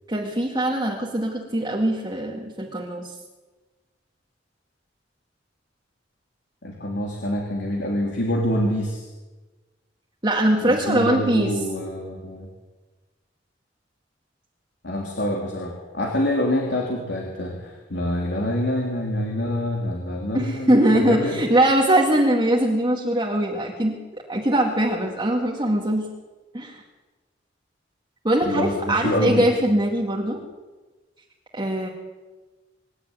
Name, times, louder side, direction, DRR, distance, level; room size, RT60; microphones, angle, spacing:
voice 1, 0.1-3.1 10.2-11.5 20.3-24.0 24.3-26.1 26.5-26.8 28.2-30.4 31.5-31.9, right 1 dB, 25° right, -2 dB, 2.2 m, -21 dB
voice 2, 6.6-9.1 10.6-12.5 14.8-21.4 28.4-29.5, left 1 dB, 65° left, -1 dB, 3.3 m, -26 dB
25.0 x 12.0 x 9.3 m, 1.2 s
head